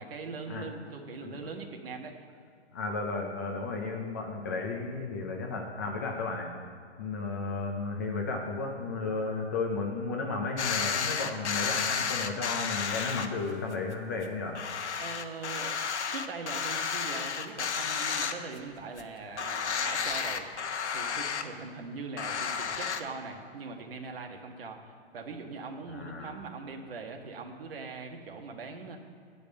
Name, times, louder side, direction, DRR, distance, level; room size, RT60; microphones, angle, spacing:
voice 1, 0.0-2.2 15.0-15.8 16.1-20.5 20.9-29.0, right 4 dB, 60° right, 3 dB, 1.5 m, -41 dB
voice 2, 2.7-6.5 7.0-14.6 25.9-26.3, left 3 dB, 15° left, 0 dB, 0.4 m, -33 dB
sound 1, 10.6-13.3 13.7-13.8 14.2-14.3 14.6-18.7 19.0-19.1 19.4-21.4 22.2-23.0, left 6 dB, 85° left, 1.0 m, -32 dB
9.9 x 5.1 x 7.7 m, 2.3 s
hypercardioid pair, 155°, 34 cm